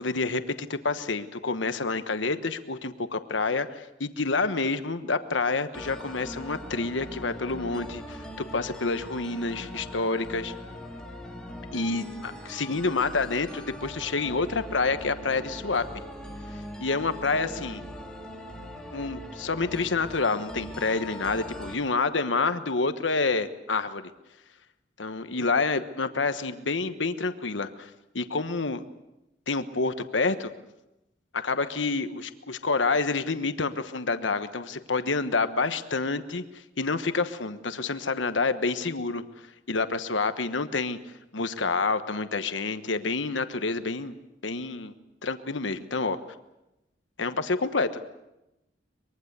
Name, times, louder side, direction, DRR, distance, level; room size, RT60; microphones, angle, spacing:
voice 1, 0.0-10.5 11.7-15.8 16.8-17.8 18.9-24.1 25.0-27.9 28.1-28.8 29.5-30.5 31.3-39.2 39.7-41.0 41.3-44.1 44.4-44.9 45.2-46.2 47.2-48.0, left 3 dB, 90° left, 10 dB, 1.2 m, -28 dB
sound 1, 5.7-21.7, equal, 5° left, 3.3 m, -41 dB
24.0 x 22.0 x 8.1 m, 0.93 s
head